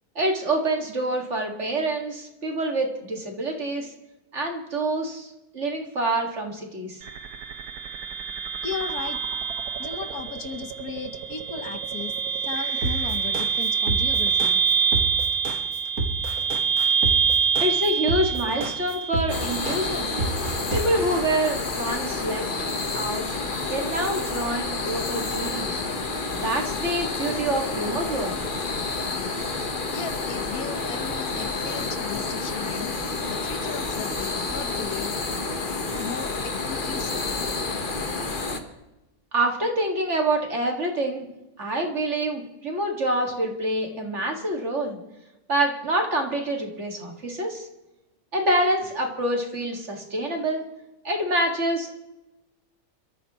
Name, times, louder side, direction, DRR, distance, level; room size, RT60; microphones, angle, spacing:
voice 1, 0.2-3.9 4.3-7.0 17.6-20.1 20.7-22.5 22.9-23.2 23.7-25.8 26.3-28.3 39.3-41.3 41.6-45.0 45.5-47.7 48.3-50.6 51.0-51.9, right 1 dB, 50° right, 2 dB, 2.4 m, -26 dB
sound 1, 7.0-20.0, right 6 dB, 90° right, 1.5 m, -26 dB
voice 2, 8.6-9.2 9.8-14.6 29.9-32.9 33.3-35.1 35.9-37.3, left 7 dB, 75° left, 9 dB, 1.6 m, -36 dB
sound 2, 12.8-21.2, right 2 dB, 70° right, 2.2 m, -29 dB
sound 3, 19.3-38.6, left 3 dB, 35° left, 1.3 m, -29 dB
27.5 x 14.0 x 3.1 m, 0.98 s
omnidirectional pair, 1.6 m